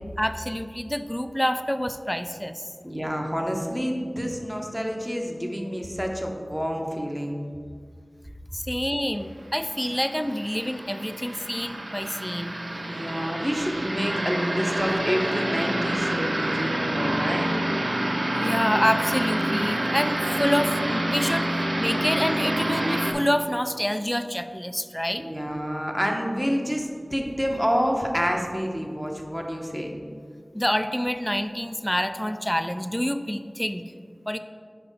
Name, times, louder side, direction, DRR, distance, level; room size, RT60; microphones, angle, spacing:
voice 1, 0.2-2.7 8.5-12.5 18.4-25.2 30.5-33.8 34.3-34.4, equal, 10° left, 9 dB, 0.3 m, -27 dB
voice 2, 2.8-7.4 12.9-17.5 25.2-29.9, equal, 10° right, 1 dB, 0.9 m, -28 dB
sound 1, 9.6-23.1, right 1 dB, 70° right, 0.6 m, -27 dB
5.5 x 5.3 x 4.1 m, 2.1 s
wide cardioid pair, 45°, 0 cm